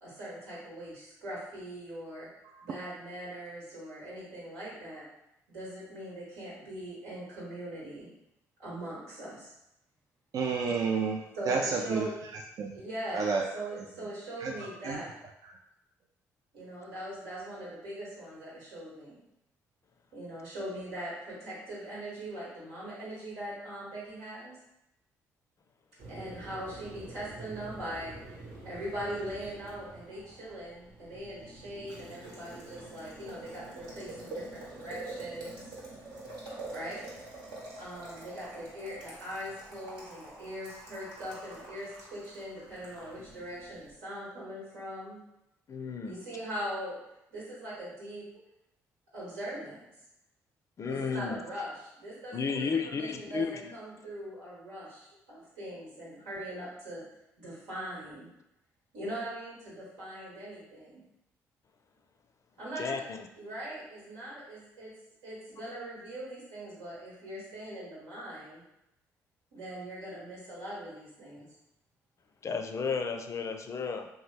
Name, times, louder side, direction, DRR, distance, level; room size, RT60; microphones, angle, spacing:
voice 1, 0.0-2.3 2.6-5.1 5.5-8.1 8.6-9.5 11.3-12.1 12.7-15.2 16.5-19.2 20.1-24.6 26.1-35.6 36.7-37.1 37.8-45.2 46.0-47.0 47.3-48.2 49.1-49.8 50.8-57.0 57.4-58.3 58.9-61.0 62.6-63.0 63.4-64.9 65.2-68.6 69.5-71.5, right 1 dB, 90° right, -7 dB, 1.3 m, -41 dB
voice 2, 10.3-12.7 13.1-13.4 14.4-15.0 15.4-15.6, right 5 dB, 55° right, 1 dB, 0.3 m, -31 dB
Boiling, 26.0-43.9, right 2 dB, 75° right, 1.0 m, -46 dB
voice 3, 45.7-46.2 50.8-51.4 52.3-53.7 62.8-63.2 72.4-74.1, left 5 dB, 45° left, 6 dB, 0.4 m, -33 dB
2.9 x 2.2 x 3.3 m, 0.85 s
hypercardioid pair, 55°, 7 cm